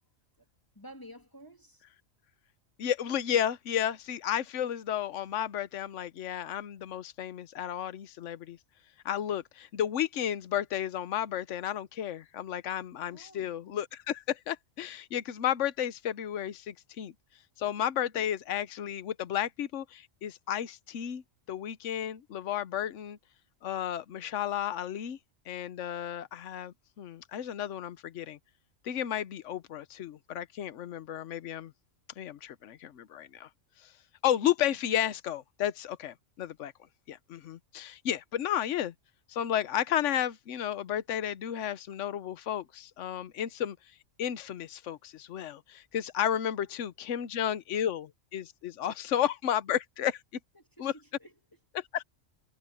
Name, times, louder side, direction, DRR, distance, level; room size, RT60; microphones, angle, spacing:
voice 1, 0.7-1.8 13.1-13.6 18.1-18.3 46.6-46.9 50.5-51.3, equal, 15° left, 2.4 m, -52 dB
voice 2, 2.8-8.6 9.0-17.1 17.6-23.2 23.6-25.2 25.5-28.4 28.8-31.7 32.2-33.5 33.8-33.9 34.2-36.7 37.1-38.9 39.3-43.8 44.2-50.2 50.8-50.9 51.9-52.0, left 10 dB, 70° left, 1.1 m, -32 dB
omnidirectional pair, 1.3 m